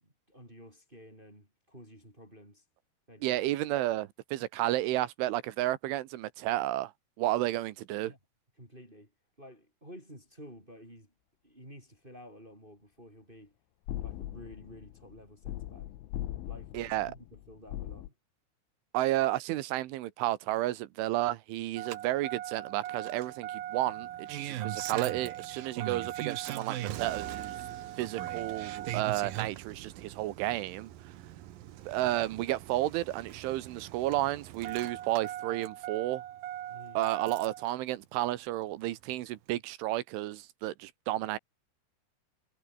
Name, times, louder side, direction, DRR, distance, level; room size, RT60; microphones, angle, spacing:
voice 1, 0.0-2.6 3.1-3.4 8.0-8.2 8.6-9.1 9.4-11.1 11.4-13.6 14.0-15.9 16.5-18.1 36.7-37.0, equal, 10° right, 7.8 m, -52 dB
voice 2, 3.2-6.9 7.2-8.1 16.7-17.1 18.9-27.6 28.0-30.9 31.9-36.2 37.0-41.4, right 16 dB, 80° right, 3.6 m, -32 dB
sound 1, 13.9-18.1, left 14 dB, 80° left, 3.9 m, -40 dB
Engine starting, 21.8-37.7 38.9-39.0, right 13 dB, 65° right, 2.5 m, -40 dB
omnidirectional pair, 5.5 m